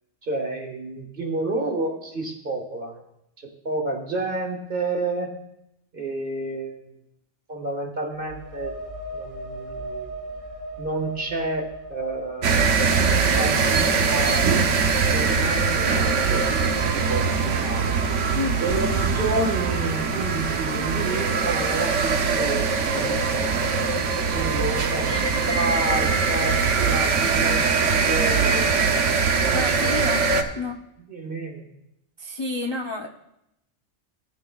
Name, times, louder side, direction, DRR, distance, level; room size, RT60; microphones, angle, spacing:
voice 1, 0.2-3.0 3.4-5.3 5.9-6.9 7.5-8.7 9.1-10.1 10.8-12.7 13.4-14.6 15.0-18.0 18.6-23.5 24.3-28.7 29.3-29.9 30.2-30.5 31.0-31.7, right 2 dB, 45° right, 2 dB, 1.7 m, -30 dB
sound 1, 8.1-15.7, right 1 dB, 30° right, 1.5 m, -39 dB
sound 2, 12.4-30.4, right 5 dB, 75° right, 1.2 m, -22 dB
voice 2, 25.1-25.4 29.5-30.2 30.6-30.8 32.2-33.1, left 3 dB, 30° left, 0 dB, 0.5 m, -30 dB
18.5 x 9.7 x 2.3 m, 0.84 s
omnidirectional pair, 1.3 m